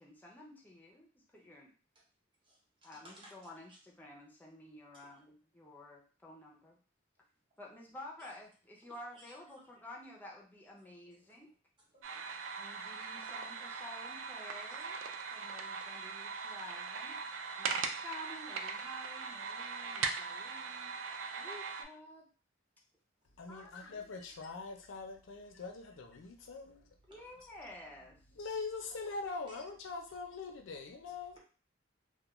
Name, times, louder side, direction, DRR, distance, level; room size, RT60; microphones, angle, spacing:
voice 1, 0.0-1.7 2.8-6.8 7.6-11.5 12.6-15.0 15.3-17.2 17.6-21.0 21.4-22.3 23.5-23.7 27.1-28.2, left 1 dB, 10° left, -2 dB, 0.4 m, -51 dB
voice 2, 2.4-3.8 8.2-8.3 9.1-9.3 10.8-10.9 11.1-11.4 11.9-12.4 13.2-13.3 13.6-13.7 19.9-20.1 27.4-27.5 29.5-29.6, right 1 dB, 25° right, -3 dB, 0.7 m, -60 dB
sound 1, 12.0-21.9, right 5 dB, 80° right, 0.3 m, -40 dB
voice 3, 23.4-26.9 27.4-27.5 28.3-31.4, left 4 dB, 85° left, 3 dB, 0.5 m, -43 dB
2.3 x 2.2 x 2.9 m, 0.40 s
head